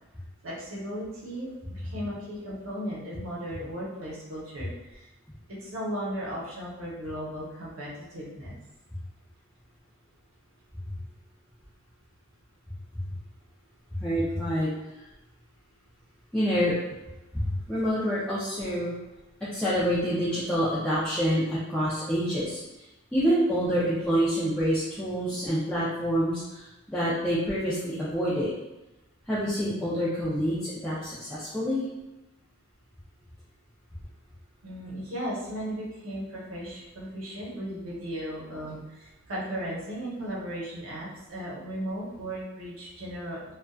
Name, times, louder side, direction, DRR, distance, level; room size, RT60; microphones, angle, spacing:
voice 1, 0.4-5.1 5.5-8.6 34.6-43.5, equal, 70° right, -6 dB, 0.8 m, -36 dB
voice 2, 14.0-14.7 16.3-16.7 17.3-18.9 19.5-21.4 21.7-22.6 23.1-28.5 29.3-31.9, equal, 5° left, -11 dB, 0.4 m, -27 dB
2.5 x 2.2 x 2.2 m, 0.99 s
head